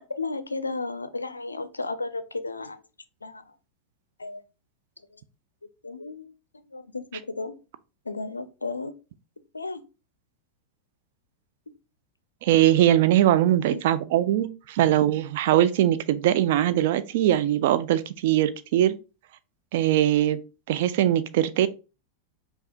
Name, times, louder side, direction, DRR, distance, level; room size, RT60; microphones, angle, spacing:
voice 1, 0.0-2.8 3.2-3.4 4.2-4.4 5.1-5.2 5.8-6.3 6.7-7.5 8.1-8.9 9.5-9.8 13.5-13.8, left 3 dB, 80° left, 0.4 m, -33 dB
voice 2, 12.4-19.0 19.7-20.4 20.7-21.7, right 12 dB, 50° right, 0.3 m, -21 dB
5.3 x 2.3 x 2.6 m
figure-of-eight pair, 90°, 0 cm